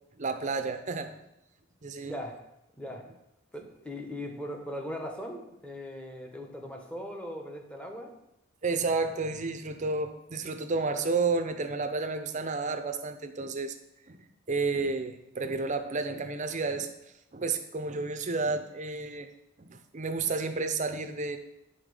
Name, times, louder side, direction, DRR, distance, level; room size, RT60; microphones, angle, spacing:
voice 1, 0.2-1.2 1.8-2.1 8.6-13.7 14.1-14.2 14.5-16.9 17.3-19.3 19.6-21.4, right 3 dB, 35° right, 7 dB, 0.7 m, -31 dB
voice 2, 2.0-2.4 2.8-3.0 3.5-8.1, left 1 dB, 5° left, 2 dB, 1.1 m, -39 dB
9.2 x 4.3 x 6.4 m, 0.87 s
head